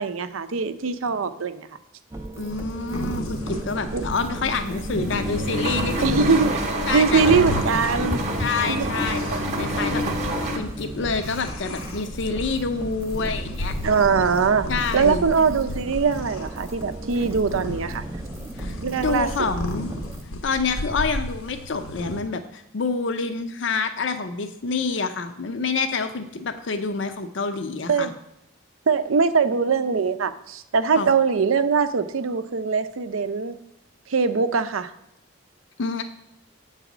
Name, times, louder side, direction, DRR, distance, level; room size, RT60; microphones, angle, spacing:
voice 1, 0.0-1.7 3.9-4.0 6.0-6.5 6.9-8.2 8.7-8.9 13.8-14.7 14.9-18.0 18.8-19.3 27.9-28.1 28.9-33.5 34.1-34.9, right 5 dB, 80° right, 11 dB, 0.5 m, -22 dB
sound 1, 2.1-20.2, right 2 dB, 15° right, 0.4 m, -36 dB
voice 2, 2.4-6.3 6.9-7.3 8.4-10.0 10.6-13.8 14.7-15.2 18.6-19.9 20.4-28.1 31.0-31.1 35.8-36.0, left 4 dB, 60° left, 8 dB, 0.5 m, -27 dB
sound 2, 2.5-22.2, left 1 dB, 90° left, 1.0 m, -34 dB
sound 3, 4.4-10.6, equal, 35° right, 0.9 m, -27 dB
8.2 x 4.1 x 6.0 m, 0.83 s
head